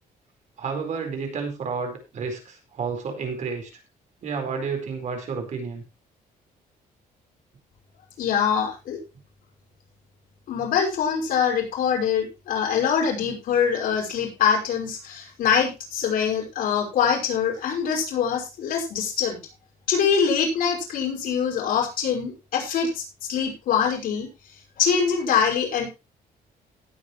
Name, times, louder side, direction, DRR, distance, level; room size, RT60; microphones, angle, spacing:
voice 1, 0.6-3.7 4.2-5.8, right 5 dB, 50° right, 4 dB, 4.5 m, -31 dB
voice 2, 8.2-9.0 10.5-19.4 19.9-23.0 23.3-24.3 24.8-25.9, left 7 dB, 75° left, 0 dB, 5.5 m, -24 dB
18.0 x 8.2 x 3.1 m, 0.28 s
cardioid pair, 140°, 15 cm